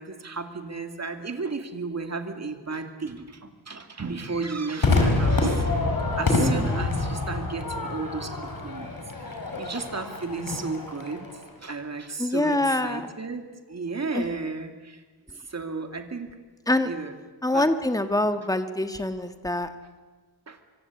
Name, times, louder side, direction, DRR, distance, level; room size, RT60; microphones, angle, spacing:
voice 1, 0.0-5.7 6.2-11.3 11.6-15.0 15.4-16.4 16.9-17.1 17.5-17.7 20.5-20.6, right 4 dB, 40° right, 6 dB, 2.4 m, -34 dB
Crowd / Fireworks, 4.8-11.4, left 2 dB, 55° left, 4.9 m, -26 dB
voice 2, 6.4-6.8 12.2-13.1 14.1-14.2 16.7-16.9 17.4-19.7, left 1 dB, 10° left, 9 dB, 1.4 m, -25 dB
25.0 x 24.0 x 8.5 m, 1.3 s
wide cardioid pair, 145°, 42 cm